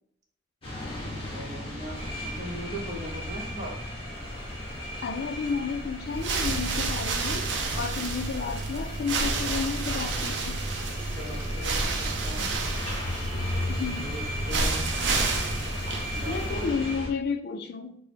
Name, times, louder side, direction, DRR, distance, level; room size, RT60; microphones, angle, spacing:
sound 1, 0.6-17.1, left 1 dB, 30° left, 0.9 m, -37 dB
voice 1, 1.3-3.8 11.1-12.4 14.0-14.8 16.1-16.9, right 1 dB, 40° right, -1 dB, 0.7 m, -39 dB
sound 2, 1.9-17.0, equal, 15° right, 0.9 m, -40 dB
voice 2, 5.0-7.5 7.8-10.6 13.7-14.1 16.3-18.0, left 5 dB, 60° left, 7 dB, 0.3 m, -32 dB
sound 3, 6.1-16.7, right 3 dB, 75° right, 0.5 m, -30 dB
3.0 x 2.0 x 4.1 m, 0.69 s
head